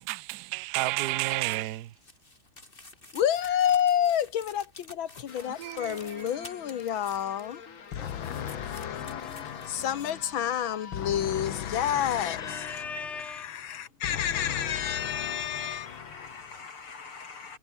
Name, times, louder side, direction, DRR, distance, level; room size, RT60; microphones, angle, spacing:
voice 1, 0.0-1.9 5.6-6.3, right 18 dB, 65° right, 1.1 m, -31 dB
sound 1, 1.2-7.6 7.9-10.1 10.6-10.7, left 2 dB, 25° left, 3.6 m, -51 dB
voice 2, 3.1-7.6 7.9-12.9 13.2-16.3, left 10 dB, 70° left, 2.0 m, -29 dB
sound 2, 5.3-12.6, left 6 dB, 40° left, 1.7 m, -47 dB
voice 3, 12.4-13.7 15.0-17.6, left 5 dB, 85° left, 4.3 m, -42 dB
omnidirectional pair, 2.3 m